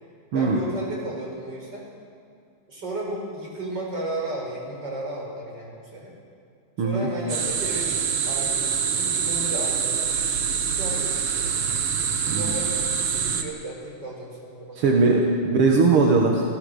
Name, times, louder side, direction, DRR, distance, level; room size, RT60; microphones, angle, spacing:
voice 1, 0.3-1.8 2.7-6.1 6.8-8.0 8.3-11.6 12.2-15.2, right 1 dB, 25° right, -2 dB, 5.5 m, -34 dB
sound 1, 7.3-13.4, right 7 dB, 70° right, 1.3 m, -25 dB
voice 2, 14.7-16.4, right 3 dB, 50° right, 0 dB, 1.8 m, -20 dB
27.0 x 15.5 x 6.7 m, 2.3 s
omnidirectional pair, 4.3 m